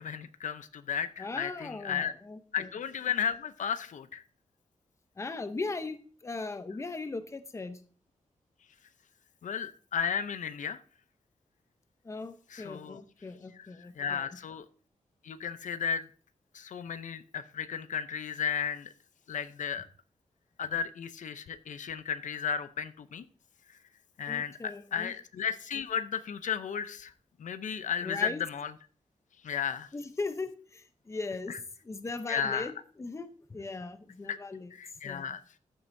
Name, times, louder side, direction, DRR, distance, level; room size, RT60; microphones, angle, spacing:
voice 1, 0.0-2.1 2.5-4.2 9.4-10.8 12.5-13.0 14.0-14.7 15.2-16.1 16.5-18.9 19.3-19.9 20.6-23.2 24.2-27.1 27.4-28.7 29.4-29.9 31.5-31.6 32.3-32.7 34.3-34.4 34.7-35.4, left 7 dB, 75° left, 12 dB, 0.6 m, -34 dB
voice 2, 1.2-2.7 5.2-7.8 12.0-14.3 24.3-25.1 28.0-28.4 29.9-31.5 31.8-34.7 35.0-35.3, left 3 dB, 20° left, 10 dB, 0.7 m, -39 dB
13.5 x 7.7 x 2.6 m, 0.41 s
wide cardioid pair, 165°, 13 cm